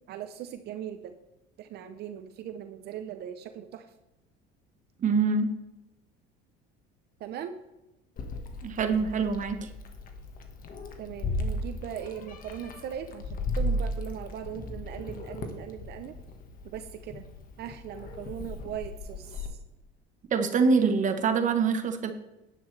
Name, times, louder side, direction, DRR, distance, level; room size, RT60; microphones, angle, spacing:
voice 1, 0.1-1.1 1.6-3.9 7.2-7.6 11.0-16.2 16.6-17.3 17.6-19.6, right 10 dB, 55° right, 8 dB, 0.7 m, -39 dB
voice 2, 5.0-5.5 8.6-9.7 20.3-22.1, right 5 dB, 40° right, 8 dB, 1.0 m, -25 dB
Meow, 8.2-19.5, left 1 dB, 45° left, 1.6 m, -36 dB
10.5 x 10.0 x 3.3 m, 0.97 s
cardioid pair, 120°, 20 cm